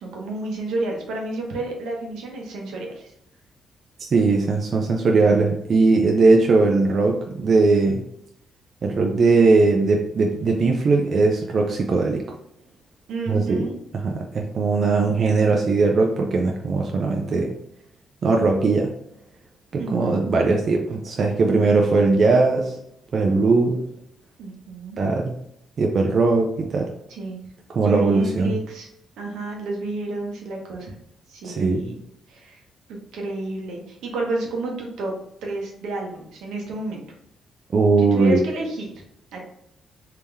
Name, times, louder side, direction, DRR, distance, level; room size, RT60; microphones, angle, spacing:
voice 1, 0.0-3.1 13.1-13.8 19.8-20.2 24.4-25.0 27.1-27.4 27.8-28.9 29.2-30.9 31.3-32.0 32.3-32.6 32.9-35.1 35.4-37.0 38.0-38.9 39.3-39.4, right 2 dB, 85° right, 0 dB, 1.0 m, -30 dB
voice 2, 4.0-8.0 8.8-12.2 13.3-13.6 14.0-17.5 18.2-18.9 19.7-22.8 23.1-23.8 25.0-25.3 25.8-26.9 27.7-28.6 31.4-32.0 37.7-38.4, right 3 dB, 50° right, 1 dB, 0.5 m, -19 dB
3.6 x 2.8 x 3.4 m, 0.75 s
cardioid pair, 100°, 0 cm